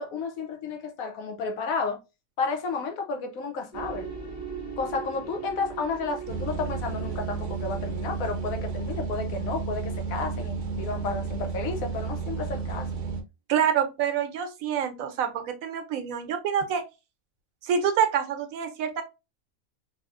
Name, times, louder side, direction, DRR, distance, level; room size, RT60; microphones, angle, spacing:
voice 1, 0.0-2.0 2.4-4.1 4.8-12.9, left 4 dB, 80° left, 1.1 m, -32 dB
sound 1, 3.7-10.8, right 6 dB, 20° left, 0.9 m, -40 dB
sound 2, 6.3-13.2, right 5 dB, 60° right, 0.7 m, -32 dB
voice 2, 13.5-16.8 17.6-19.0, right 8 dB, 80° right, 1.1 m, -26 dB
3.4 x 2.7 x 2.4 m
omnidirectional pair, 1.5 m